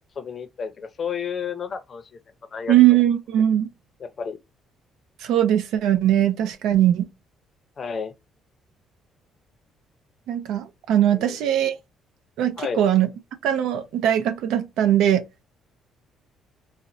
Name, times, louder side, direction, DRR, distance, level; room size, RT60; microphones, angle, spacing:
voice 1, 0.2-2.0 2.5-2.7 4.0-4.4 7.8-8.1 11.1-11.4 12.6-12.8, left 6 dB, 35° left, 0.5 m, -31 dB
voice 2, 2.7-3.7 5.2-7.1 10.3-11.8 12.4-13.1 13.4-15.3, right 11 dB, 85° right, 0.5 m, -20 dB
4.0 x 2.1 x 2.6 m
cardioid pair, 140°, 0 cm